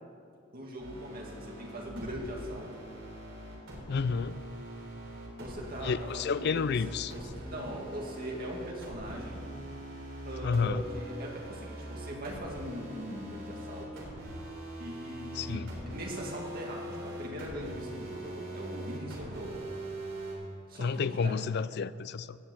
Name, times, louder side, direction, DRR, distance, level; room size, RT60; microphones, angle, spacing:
voice 1, 0.5-2.7 5.4-6.7 7.1-9.4 10.2-14.0 14.8-19.7 20.7-21.3, equal, 45° right, -1 dB, 2.4 m, -41 dB
sound 1, 0.8-20.3, right 1 dB, 65° right, 3.5 m, -42 dB
voice 2, 3.9-4.4 5.8-7.1 10.4-10.8 15.3-15.7 20.8-22.4, left 5 dB, 50° left, 16 dB, 0.4 m, -30 dB
17.0 x 6.3 x 7.9 m, 2.3 s
head